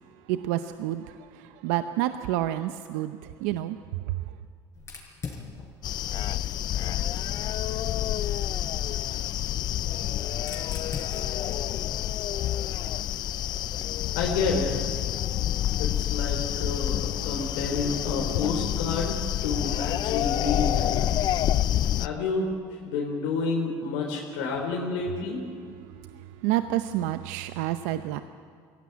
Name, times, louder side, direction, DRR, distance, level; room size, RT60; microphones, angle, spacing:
voice 1, 0.3-3.8 4.1-4.2 25.8-28.2, right 14 dB, 85° right, 10 dB, 0.7 m, -29 dB
Fire, 4.7-7.5 8.7-12.9, left 5 dB, 30° left, 5.6 m, -44 dB
sound 1, 5.8-22.1, left 12 dB, 50° left, 0.5 m, -28 dB
voice 2, 14.2-14.7 15.8-21.0 22.0-22.5 22.8-25.4, left 4 dB, 90° left, -1 dB, 3.6 m, -29 dB
22.0 x 17.0 x 9.6 m, 2.1 s
supercardioid pair, 105°, 9 cm